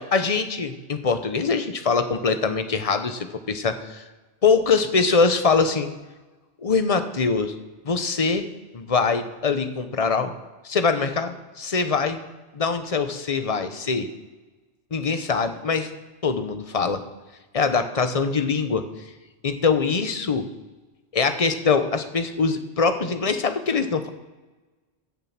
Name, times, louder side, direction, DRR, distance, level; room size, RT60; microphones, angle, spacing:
voice 1, 0.0-4.0 4.4-5.9 6.6-7.5 7.8-8.5 8.7-10.3 10.6-12.2 12.5-14.1 14.9-15.9 16.2-17.0 17.5-18.8 19.4-20.5 21.1-24.1, left 4 dB, 30° left, 9 dB, 0.9 m, -23 dB
15.5 x 7.5 x 6.0 m, 1.2 s
omnidirectional pair, 1.3 m